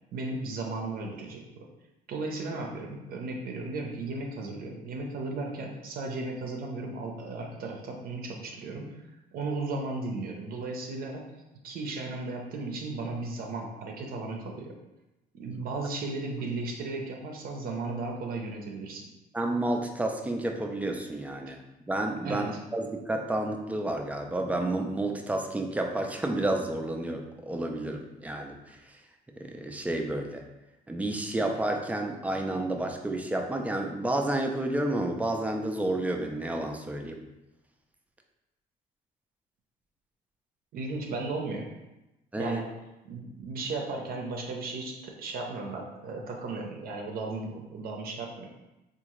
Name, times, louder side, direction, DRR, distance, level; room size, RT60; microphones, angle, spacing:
voice 1, 0.1-1.7 2.1-11.3 11.6-14.8 15.3-19.1 21.5-21.6 22.2-22.6 40.7-41.7 42.4-42.7 43.1-48.5, right 3 dB, 60° right, 1 dB, 0.5 m, -35 dB
voice 2, 19.3-21.6 21.9-28.8 29.4-30.4 30.9-37.2 42.3-42.6, right 1 dB, 10° right, 3 dB, 0.3 m, -30 dB
3.6 x 2.5 x 2.9 m, 0.98 s
cardioid pair, 110°, 17 cm